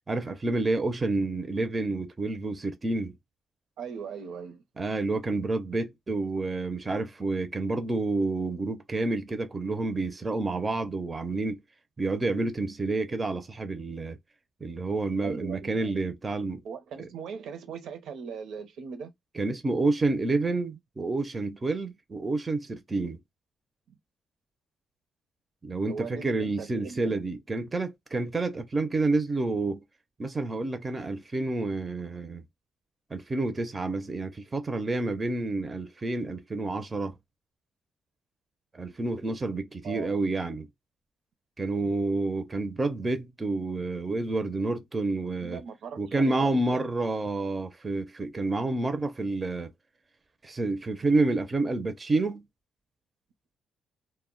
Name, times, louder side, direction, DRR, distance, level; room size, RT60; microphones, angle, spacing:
voice 1, 0.1-3.1 4.8-11.6 12.0-14.2 14.6-16.6 17.0-17.1 19.3-23.2 25.6-29.8 30.2-32.4 33.1-37.1 38.7-40.7 41.6-45.6 46.0-49.7 50.4-52.4, right 2 dB, 25° right, 0.4 m, -29 dB
voice 2, 3.8-4.6 15.2-16.0 16.6-19.1 25.9-27.2 39.8-40.2 45.4-46.6, right 6 dB, 75° right, 0.6 m, -39 dB
2.1 x 2.0 x 3.7 m
cardioid pair, 90°, 0 cm